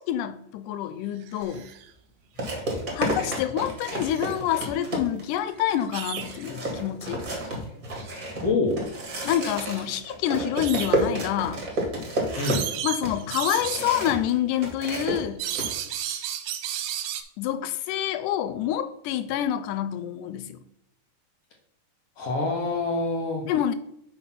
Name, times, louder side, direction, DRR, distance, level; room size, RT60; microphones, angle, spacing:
voice 1, 0.0-1.7 2.9-7.2 9.2-11.6 12.8-15.5 17.4-20.6 23.5-23.7, left 11 dB, 85° left, 12 dB, 2.1 m, -27 dB
sound 1, 1.2-1.9 3.4-3.5 3.9-4.8 5.5-6.5 8.0-8.2 9.1-9.3 10.4-11.1 11.8-11.9 12.4-14.1 15.1-17.2, right 10 dB, 75° right, 2.0 m, -34 dB
sound 2, 1.4-1.6 2.4-5.4 5.8-5.9 6.2-14.3 14.6-15.7, right 1 dB, 35° right, 1.6 m, -31 dB
voice 2, 8.4-8.8 12.4-12.7 22.2-23.4, left 3 dB, 55° left, 1 dB, 1.9 m, -26 dB
5.9 x 5.7 x 5.7 m, 0.78 s
omnidirectional pair, 3.8 m